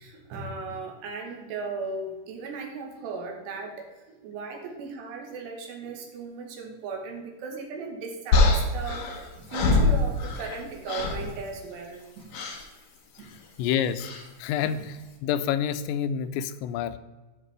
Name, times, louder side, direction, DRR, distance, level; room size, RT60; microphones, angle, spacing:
voice 1, 0.0-9.1 9.4-12.4 13.2-13.4 14.6-14.8, right 4 dB, 75° right, 2 dB, 3.2 m, -37 dB
sound 1, 8.3-10.6 10.9-11.3 12.3-12.6 14.0-14.3, left 3 dB, 70° left, 2.0 m, -24 dB
voice 2, 13.6-14.1 14.4-17.0, left 9 dB, 90° left, 11 dB, 2.9 m, -28 dB
13.0 x 5.1 x 3.3 m, 1.2 s
omnidirectional pair, 5.1 m